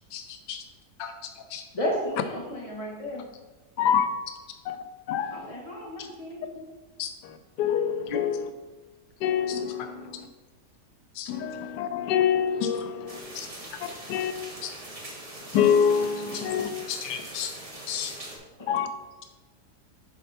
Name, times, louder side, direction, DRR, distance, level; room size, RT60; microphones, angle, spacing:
voice 1, 0.1-0.6 1.0-1.6 6.0-6.7 7.0-7.1 8.1-8.2 9.5-9.6 11.1-11.3 13.3-13.5 14.6-14.7 16.3-16.4 16.9-17.5 17.9-18.1, left 8 dB, 70° left, 5 dB, 0.5 m, -36 dB
voice 2, 1.7-3.3 5.3-6.4 18.6-18.7, equal, 20° left, -2 dB, 1.4 m, -33 dB
voice 3, 3.8-4.1 4.7-4.8 5.1-5.5 7.6-8.5 9.2-10.3 11.3-13.2 13.8-14.3 15.5-16.7 18.7-18.9, left 8 dB, 90° left, 9 dB, 1.2 m, -25 dB
sound 1, 13.1-18.4, right 1 dB, 25° right, 1.2 m, -42 dB
6.8 x 4.3 x 5.7 m, 1.2 s
omnidirectional pair, 1.8 m